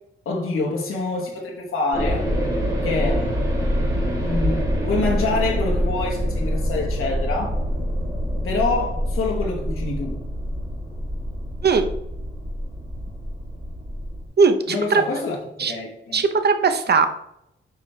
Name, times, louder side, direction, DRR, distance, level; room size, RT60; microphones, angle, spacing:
voice 1, 0.2-2.3 2.8-3.4 4.2-7.6 8.4-10.2 14.7-16.2, left 3 dB, 80° left, -1 dB, 1.3 m, -26 dB
sound 1, 1.9-14.3, equal, 15° right, 2.8 m, -25 dB
voice 2, 14.4-15.0 15.6-15.7 16.1-17.1, right 5 dB, 50° right, 8 dB, 0.7 m, -18 dB
8.7 x 4.9 x 3.3 m, 0.79 s
wide cardioid pair, 130°, 21 cm